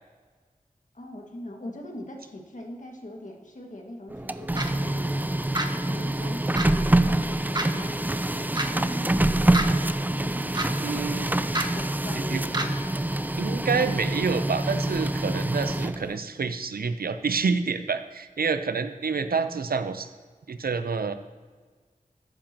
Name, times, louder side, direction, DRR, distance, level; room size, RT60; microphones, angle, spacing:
voice 1, 0.9-8.5 8.7-13.0 13.4-13.9, left 1 dB, 60° left, 1 dB, 1.8 m, -42 dB
Printer, 4.1-16.2, right 1 dB, 10° right, 0.4 m, -26 dB
sound 1, 4.6-4.7 5.5-5.7 6.6-6.7 7.5-7.7 8.5-8.7 9.5-9.7 10.5-10.7 11.5-11.7 12.5-12.7, right 2 dB, 30° right, 0.9 m, -27 dB
voice 2, 10.8-11.3 12.3-12.4 13.4-20.1 20.5-21.1, right 5 dB, 85° right, 10 dB, 0.6 m, -28 dB
14.0 x 10.5 x 2.9 m, 1.4 s
wide cardioid pair, 60°, 15 cm